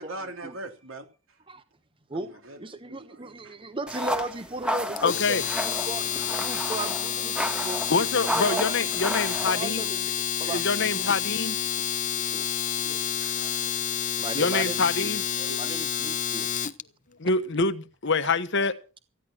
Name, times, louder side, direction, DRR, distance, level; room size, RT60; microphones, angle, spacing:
voice 1, 0.0-1.4 2.1-3.6 4.0-4.1 6.7-7.0 12.7-13.8 14.1-14.5 15.3-15.7 18.2-18.4, right 2 dB, 75° right, 3.2 m, -43 dB
voice 2, 2.6-6.1 6.4-7.8 8.3-8.7 9.0-11.2 12.2-12.5 14.2-15.1 15.6-16.5, right 3 dB, 25° right, 1.1 m, -36 dB
sound 1, 3.9-9.5, equal, 5° right, 1.6 m, -32 dB
voice 3, 5.0-5.4 7.6-9.8 10.4-11.6 14.3-15.2 17.2-18.7, left 4 dB, 60° left, 1.2 m, -26 dB
Domestic sounds home sounds, 5.0-16.8, left 9 dB, 40° left, 0.7 m, -29 dB
15.0 x 10.5 x 6.1 m
head